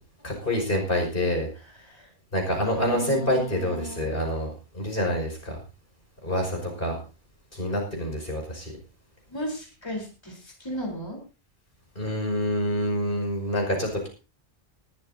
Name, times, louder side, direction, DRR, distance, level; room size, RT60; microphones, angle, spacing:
voice 1, 0.2-1.5 2.3-5.6 6.2-7.0 7.5-8.7 12.0-14.1, left 1 dB, 60° left, 1 dB, 5.8 m, -27 dB
voice 2, 2.6-4.1 9.3-11.2, equal, 25° left, -1 dB, 4.0 m, -35 dB
20.0 x 14.0 x 2.8 m, 0.33 s
omnidirectional pair, 1.0 m